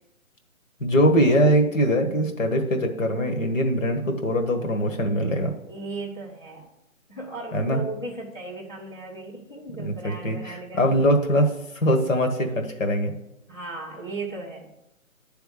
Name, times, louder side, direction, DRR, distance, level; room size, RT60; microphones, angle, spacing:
voice 1, 0.8-5.5 7.5-7.8 9.8-13.1, equal, 65° left, 3 dB, 1.6 m, -22 dB
voice 2, 5.7-6.7 7.1-10.9 13.5-14.7, right 3 dB, 20° left, -7 dB, 0.6 m, -36 dB
9.0 x 3.5 x 6.5 m, 0.84 s
hypercardioid pair, 165°, 42 cm